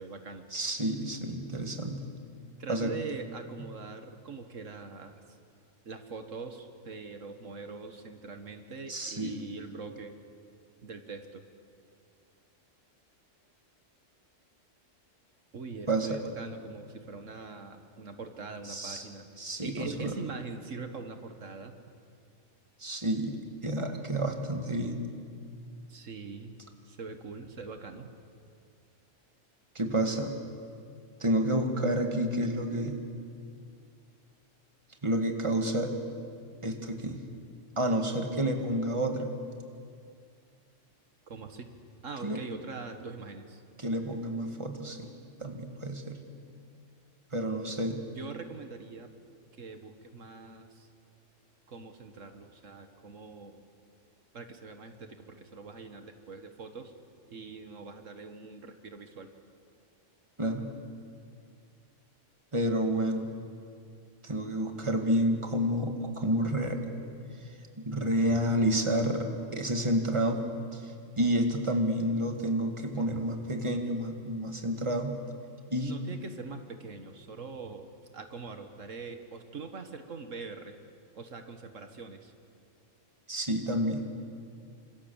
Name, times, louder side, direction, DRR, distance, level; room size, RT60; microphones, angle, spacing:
voice 1, 0.0-0.4 2.6-5.2 5.9-10.1 10.8-11.4 15.5-19.3 19.6-21.7 25.9-26.6 26.9-28.1 41.3-41.7 42.0-43.6 47.4-47.8 48.1-49.1 49.6-50.9 51.7-53.6 54.3-56.9 57.3-59.3 75.8-77.9 78.1-80.8 81.2-82.3, right 4 dB, 80° right, 7 dB, 1.9 m, -43 dB
voice 2, 0.5-2.0 2.7-2.9 8.9-9.4 15.9-16.2 18.7-19.0 19.4-20.1 22.8-23.4 23.6-25.1 29.8-30.4 31.2-33.0 35.0-36.0 36.6-37.2 37.8-39.3 42.2-42.4 43.8-45.1 45.4-46.2 47.3-48.0 60.4-60.7 62.5-63.3 64.2-66.8 67.9-70.4 70.7-75.2 75.7-75.9 83.3-84.1, right 1 dB, 25° right, 4 dB, 2.2 m, -29 dB
28.5 x 26.0 x 7.2 m, 2.3 s
omnidirectional pair, 1.3 m